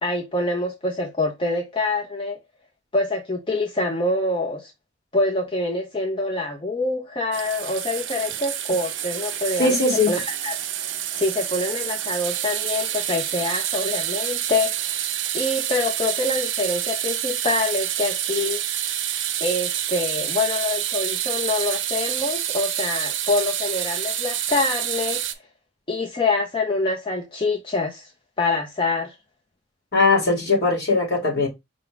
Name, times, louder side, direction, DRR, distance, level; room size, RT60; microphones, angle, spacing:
voice 1, 0.0-2.4 2.9-4.7 5.1-9.8 10.1-15.0 15.3-18.6 19.4-25.2 25.9-28.1 28.4-29.1, left 2 dB, 25° left, 0.5 m, -25 dB
sound 1, 7.3-25.3, right 11 dB, 70° right, 0.5 m, -28 dB
voice 2, 9.6-10.1 29.9-31.5, left 3 dB, 55° left, 2.4 m, -19 dB
5.0 x 2.3 x 3.7 m
head